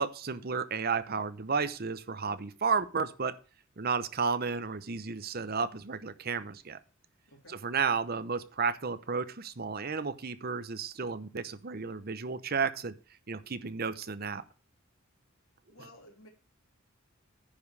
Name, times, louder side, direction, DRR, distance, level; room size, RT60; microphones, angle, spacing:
voice 1, 0.0-3.3 3.8-6.8 7.5-12.9 13.3-14.4, right 5 dB, 45° right, 13 dB, 0.8 m, -32 dB
voice 2, 15.7-16.3, left 1 dB, 85° left, -2 dB, 3.6 m, -54 dB
10.0 x 5.4 x 6.3 m, 0.35 s
head